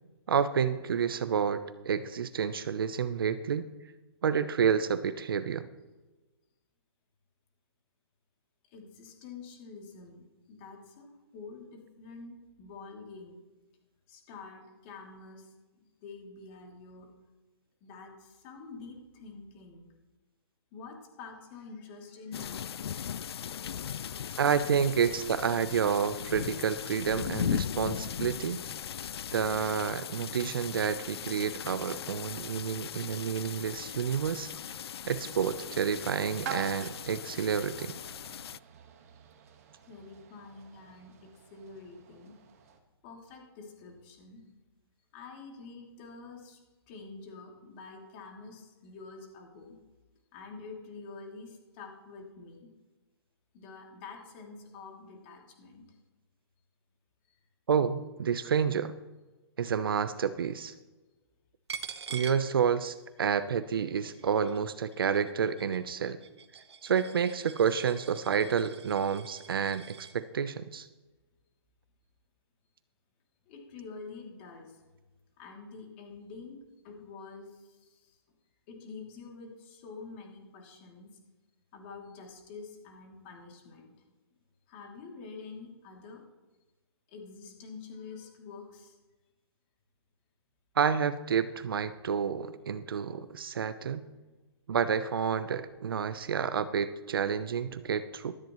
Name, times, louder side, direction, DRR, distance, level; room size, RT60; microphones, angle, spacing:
voice 1, 0.3-3.7 4.2-5.7 24.4-28.6 29.3-34.5 35.1-37.9 57.7-58.9 59.6-60.7 62.1-66.2 66.8-70.9 90.8-94.0 94.7-98.3, right 7 dB, 60° right, 13 dB, 0.8 m, -29 dB
voice 2, 8.7-13.4 14.1-17.1 17.8-19.9 20.7-22.9 39.8-42.3 43.0-44.4 45.1-46.6 46.9-49.8 50.3-52.7 53.5-56.0 57.3-57.4 73.5-74.8 75.4-76.6 76.8-78.2 78.7-81.2 81.7-83.9 84.7-86.2 87.1-89.0, left 4 dB, 25° left, 0 dB, 2.8 m, -47 dB
sound 1, 22.3-38.6, left 9 dB, 70° left, 0.4 m, -38 dB
sound 2, 35.1-42.8, right 6 dB, 35° right, 1.5 m, -47 dB
Coin (dropping), 61.7-63.2 63.5-70.2, right 6 dB, 85° right, 1.3 m, -46 dB
15.5 x 13.5 x 3.1 m, 1.2 s
hypercardioid pair, 170°, 14 cm